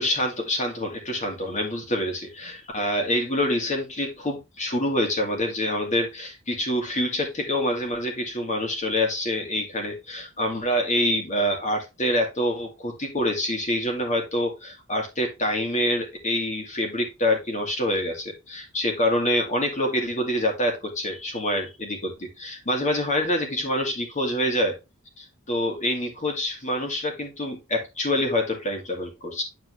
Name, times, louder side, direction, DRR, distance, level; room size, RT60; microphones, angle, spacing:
voice 1, 0.0-24.8 25.2-29.4, left 1 dB, 35° left, 2 dB, 2.5 m, -26 dB
9.8 x 4.7 x 3.2 m, 0.24 s
head